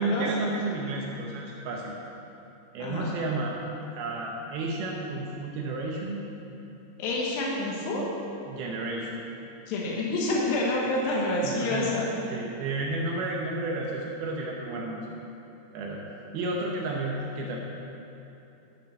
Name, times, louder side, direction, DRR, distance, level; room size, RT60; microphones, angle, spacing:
voice 1, 0.0-1.9 2.7-3.5 3.9-6.3 8.5-9.2 11.0-11.9 12.3-15.2 15.7-16.0 16.3-17.6, right 2 dB, 75° right, -1 dB, 2.7 m, -32 dB
voice 2, 2.8-3.2 7.0-8.1 9.7-12.0, left 2 dB, 90° left, -3 dB, 3.5 m, -28 dB
11.0 x 7.1 x 6.4 m, 2.9 s
omnidirectional pair, 4.8 m